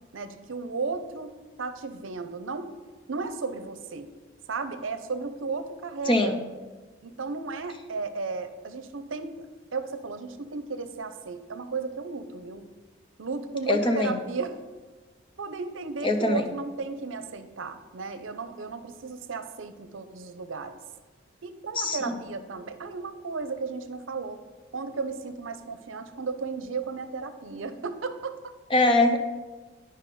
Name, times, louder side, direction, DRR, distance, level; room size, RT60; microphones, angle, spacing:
voice 1, 0.1-2.7 3.1-4.1 4.5-6.4 7.0-9.5 9.7-12.7 13.2-14.5 15.4-20.8 21.4-24.4 24.7-28.5, right 4 dB, 80° right, 10 dB, 0.6 m, -34 dB
voice 2, 6.1-6.4 13.7-14.2 16.0-16.5 21.8-22.2 28.7-29.2, left 2 dB, 25° left, 5 dB, 0.6 m, -22 dB
11.0 x 5.1 x 4.2 m, 1.3 s
head